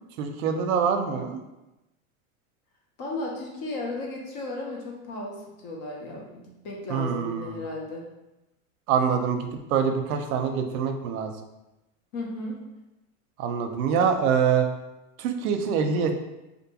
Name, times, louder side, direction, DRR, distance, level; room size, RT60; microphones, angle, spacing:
voice 1, 0.2-1.4 6.9-7.6 8.9-11.3 13.4-14.7 15.2-16.1, right 6 dB, 85° right, 6 dB, 0.5 m, -25 dB
voice 2, 3.0-8.0 12.1-12.6, left 2 dB, 35° left, -1 dB, 0.4 m, -35 dB
2.6 x 2.2 x 2.7 m, 0.98 s
supercardioid pair, 155°, 41 cm